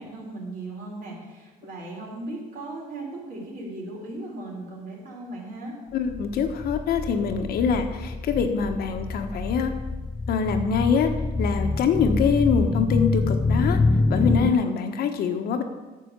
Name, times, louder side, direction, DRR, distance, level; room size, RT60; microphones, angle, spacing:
voice 1, 0.0-5.8, right 2 dB, 55° right, -2 dB, 4.2 m, -37 dB
voice 2, 5.9-9.7 10.3-11.1 11.4-13.8 14.1-15.6, left 6 dB, 65° left, 6 dB, 1.3 m, -24 dB
sound 1, 6.1-14.5, left 3 dB, 15° left, 0.3 m, -26 dB
9.6 x 6.7 x 8.2 m, 1.2 s
cardioid pair, 110°, 17 cm